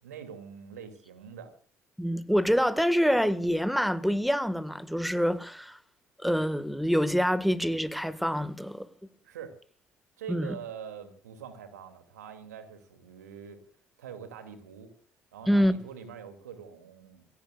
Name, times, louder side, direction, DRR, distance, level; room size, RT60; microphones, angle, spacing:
voice 1, 0.0-1.5 9.2-9.6 10.2-13.6 14.0-14.9 15.3-17.3, right 7 dB, 80° right, 2.5 m, -44 dB
voice 2, 2.0-5.8 6.2-8.9 10.3-10.6 15.5-15.7, equal, ahead, 1.6 m, -26 dB
28.5 x 16.0 x 2.4 m
figure-of-eight pair, 50°, 9 cm